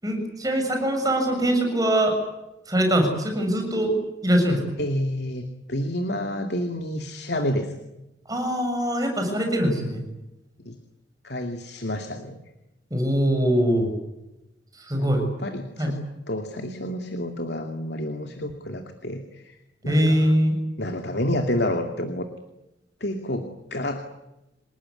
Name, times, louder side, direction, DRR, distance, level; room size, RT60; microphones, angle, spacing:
voice 1, 0.0-2.2 2.7-4.0 4.2-4.6 8.3-10.0 12.9-13.9 14.8-15.2 15.8-15.9 19.9-20.5, equal, 20° right, 4 dB, 7.3 m, -22 dB
voice 2, 4.8-7.8 10.6-10.8 11.2-12.4 15.0-15.1 15.4-16.0 16.3-19.6 19.8-20.3 20.8-22.3 23.0-24.1, left 1 dB, 65° left, 5 dB, 2.5 m, -29 dB
28.5 x 18.5 x 9.8 m, 0.96 s
head